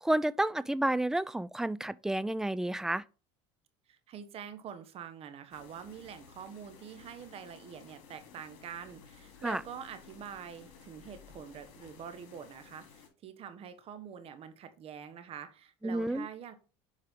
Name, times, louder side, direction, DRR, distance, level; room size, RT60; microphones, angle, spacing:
voice 1, 0.0-3.0 9.4-9.6 15.8-16.3, right 1 dB, 5° right, 0.3 m, -30 dB
voice 2, 3.9-16.5, right 8 dB, 45° right, 1.3 m, -46 dB
sound 1, 5.5-13.1, left 6 dB, 70° left, 2.9 m, -55 dB
7.6 x 4.8 x 3.6 m
supercardioid pair, 115°, 14 cm